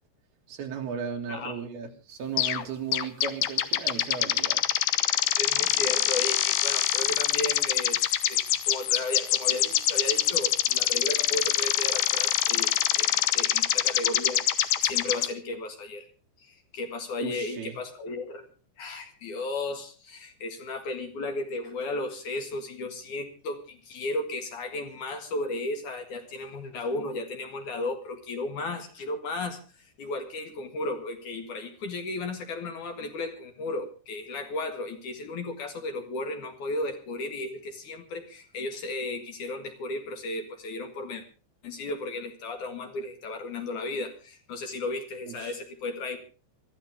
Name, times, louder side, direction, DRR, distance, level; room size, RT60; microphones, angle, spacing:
voice 1, 0.5-4.7 17.2-17.8 45.3-45.6, right 6 dB, 65° right, 3 dB, 3.8 m, -36 dB
sound 1, 2.4-2.6 2.9-15.3, left 12 dB, 75° left, 2.7 m, -25 dB
voice 2, 5.4-8.0 8.3-16.1 16.4-18.5 18.8-41.2 41.6-46.2, left 2 dB, 55° left, 5 dB, 2.8 m, -34 dB
25.0 x 13.5 x 3.5 m, 0.35 s
omnidirectional pair, 5.1 m